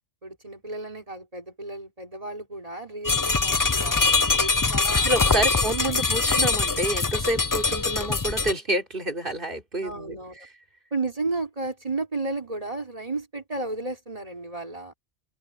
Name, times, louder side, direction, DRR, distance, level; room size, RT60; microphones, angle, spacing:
voice 1, 0.2-6.0 9.8-10.5 10.9-14.9, right 3 dB, 30° right, 3.8 m, -33 dB
sound 1, 3.0-8.5, left 4 dB, 25° left, 0.4 m, -23 dB
voice 2, 4.9-10.2, right 1 dB, 45° right, 4.0 m, -28 dB
omnidirectional pair, 1.2 m